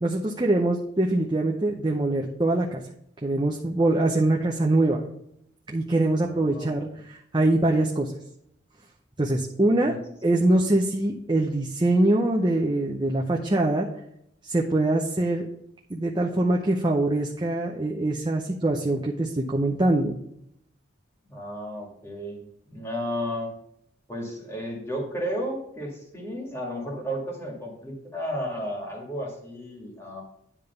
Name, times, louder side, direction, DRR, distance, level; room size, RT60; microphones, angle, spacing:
voice 1, 0.0-2.8 3.2-5.0 5.7-8.1 9.2-9.9 10.2-13.9 14.4-15.5 15.9-20.2, right 2 dB, 20° right, -1 dB, 0.6 m, -23 dB
voice 2, 6.3-6.7 9.8-10.0 21.3-22.4 22.7-23.5 24.1-30.2, equal, 15° left, -1 dB, 1.9 m, -33 dB
10.0 x 3.5 x 6.7 m, 0.74 s
head